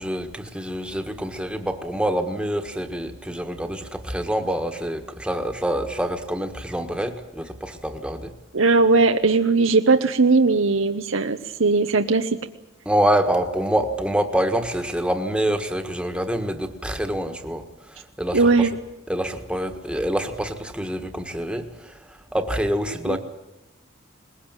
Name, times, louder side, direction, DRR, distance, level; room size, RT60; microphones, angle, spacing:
voice 1, 0.0-8.3 12.8-18.7 19.1-22.0 22.3-23.2, right 1 dB, 5° right, 6 dB, 1.5 m, -26 dB
voice 2, 8.5-12.3 18.3-18.7 23.1-23.2, right 3 dB, 85° right, 7 dB, 1.0 m, -18 dB
22.0 x 20.0 x 9.0 m, 0.92 s
head